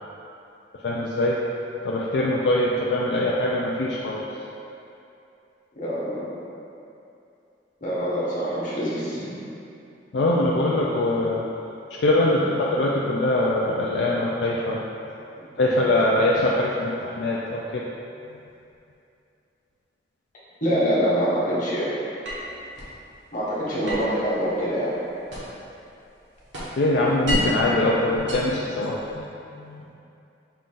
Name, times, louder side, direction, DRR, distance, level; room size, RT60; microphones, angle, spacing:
voice 1, 0.8-1.4 1.8-4.2 10.1-11.4 12.0-14.8 15.6-17.8 26.8-29.0 29.7-29.8, left 1 dB, 70° left, -5 dB, 0.4 m, -22 dB
voice 2, 5.7-6.4 7.8-9.4 12.2-12.5 15.4-15.6 20.6-21.9 23.3-24.9, equal, 45° left, -8 dB, 1.2 m, -25 dB
sound 1, 22.2-23.0 23.8-25.7 26.0-27.7 28.1-29.2, left 1 dB, 85° right, 1.1 m, -32 dB
5.5 x 2.5 x 3.7 m, 2.7 s
head